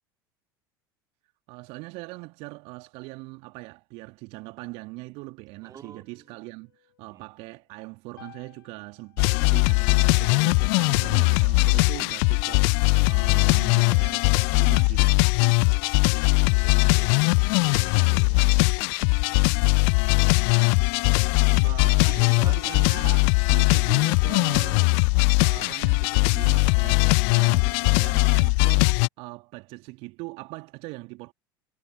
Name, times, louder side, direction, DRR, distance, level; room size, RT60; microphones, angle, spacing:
voice 1, 1.5-15.3 21.6-24.9 25.4-31.3, right 25 dB, 50° right, 1.9 m, -41 dB
voice 2, 5.6-6.4 7.0-7.3 16.0-18.7 21.5-23.1, right 7 dB, 30° right, 3.0 m, -46 dB
sound 1, 5.8-7.6 8.2-9.6 11.2-12.6 14.2-15.6, left 12 dB, 70° left, 7.6 m, -55 dB
sound 2, 9.2-29.1, left 40 dB or more, 50° left, 0.4 m, -20 dB
figure-of-eight pair, 75°, 13 cm